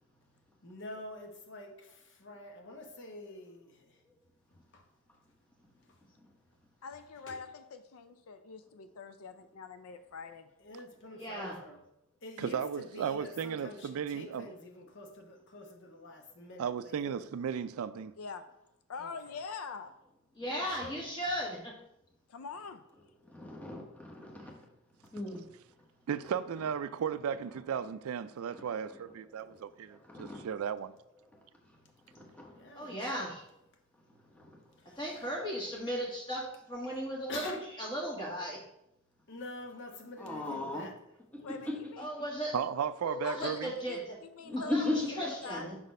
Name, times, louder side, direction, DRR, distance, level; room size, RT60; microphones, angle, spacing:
voice 1, 0.6-4.0 4.7-4.8 5.9-6.0 7.3-7.4 10.6-11.8 12.2-17.2 19.0-19.3 20.4-21.0 32.5-33.3 34.8-35.1 37.3-37.7 39.3-40.9 41.4-41.6, left 2 dB, 55° left, 1.0 m, -47 dB
voice 2, 6.8-10.5 18.2-18.4 18.9-19.9 22.3-22.8 41.4-42.0 43.2-44.0 44.3-44.7 45.1-45.7, left 5 dB, 75° left, 0.4 m, -44 dB
voice 3, 11.1-11.6 20.3-21.8 32.7-33.4 34.8-38.6 42.0-42.8 43.0-44.2 44.6-45.8, equal, 20° left, 1.7 m, -37 dB
voice 4, 12.4-14.5 16.6-18.1 26.1-30.9 42.5-43.7, right 7 dB, 70° right, 0.3 m, -35 dB
voice 5, 23.2-24.6 25.1-25.5 28.5-29.0 29.3-29.4 29.9-30.5 32.1-32.6 34.4-34.5 40.2-40.9 41.3-41.9 44.4-45.2, left 2 dB, 5° left, 1.0 m, -37 dB
5.5 x 4.1 x 5.2 m
head